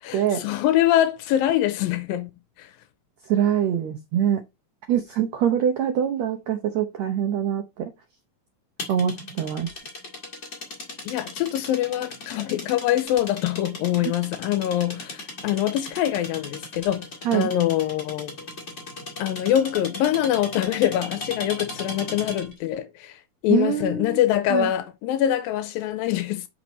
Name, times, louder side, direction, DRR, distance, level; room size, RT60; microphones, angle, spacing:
voice 1, 0.0-2.3 2.6-2.7 11.1-18.4 19.2-26.5, left 12 dB, 85° left, 2.4 m, -24 dB
voice 2, 3.3-4.4 4.9-7.9 8.9-9.7 17.2-17.5 23.5-24.2 24.5-24.7, right 9 dB, 75° right, 1.6 m, -24 dB
sound 1, 8.8-22.6, left 2 dB, 30° left, 1.6 m, -37 dB
6.0 x 6.0 x 4.0 m
omnidirectional pair, 4.2 m